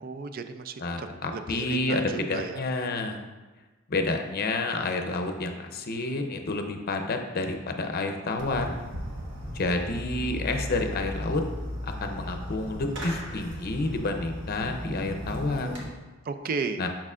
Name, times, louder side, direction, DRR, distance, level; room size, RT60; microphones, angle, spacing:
voice 1, 0.0-1.1 1.3-2.6 16.3-16.8, right 4 dB, 45° right, 9 dB, 0.4 m, -34 dB
voice 2, 0.8-3.2 3.9-8.8 9.5-11.4 11.8-15.8 16.8-16.9, left 2 dB, 50° left, 5 dB, 0.6 m, -29 dB
Fireworks, 8.4-15.8, equal, 65° right, 1.3 m, -36 dB
6.6 x 6.0 x 2.4 m, 1.2 s
head